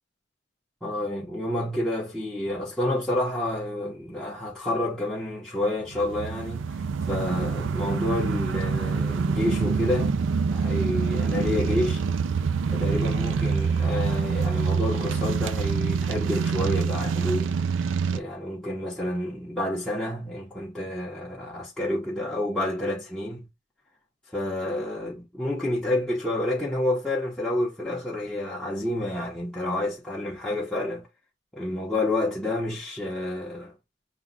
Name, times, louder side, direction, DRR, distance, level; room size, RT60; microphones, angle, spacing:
voice 1, 0.8-10.1 10.5-12.0 12.7-17.6 18.1-23.5 24.3-31.1 31.5-33.7, left 1 dB, 5° left, 0.9 m, -29 dB
sound 1, 5.9-18.2, right 5 dB, 75° right, 0.4 m, -26 dB
5.8 x 2.3 x 3.9 m
head